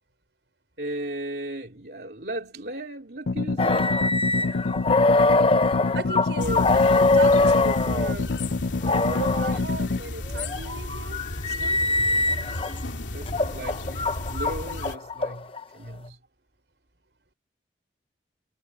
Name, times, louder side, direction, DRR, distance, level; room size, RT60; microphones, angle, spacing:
voice 1, 0.8-4.0 4.3-5.1 6.1-6.6 9.4-9.6 11.5-15.5 15.7-16.2, right 1 dB, 60° right, 3.1 m, -37 dB
sound 1, 3.3-10.0, left 3 dB, 70° left, 0.5 m, -27 dB
sound 2, 3.6-8.1 8.8-9.6 10.3-12.7 13.3-15.6, left 3 dB, 30° left, 0.8 m, -23 dB
voice 2, 5.9-8.4 9.1-11.2 11.5-11.8, right 2 dB, 80° right, 5.5 m, -36 dB
sound 3, 6.4-15.0, left 1 dB, 85° left, 2.9 m, -35 dB
head